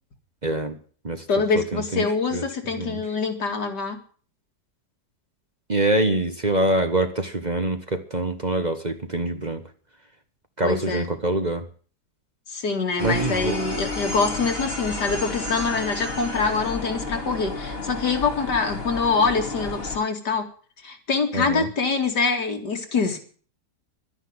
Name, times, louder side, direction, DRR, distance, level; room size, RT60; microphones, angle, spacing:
voice 1, 0.4-0.8 1.0-1.2 1.5-2.0 2.3-2.4 2.8-3.0 5.7-9.6 10.6-11.7 13.0-13.6 21.3-21.7, right 2 dB, 30° right, 7 dB, 1.3 m, -25 dB
voice 2, 1.3-4.0 10.6-11.1 12.5-20.5 20.8-23.2, left 4 dB, 80° left, 4 dB, 3.0 m, -25 dB
sound 1, 13.0-20.0, left 2 dB, 35° left, 2.7 m, -31 dB
12.0 x 10.0 x 9.7 m, 0.43 s
omnidirectional pair, 1.8 m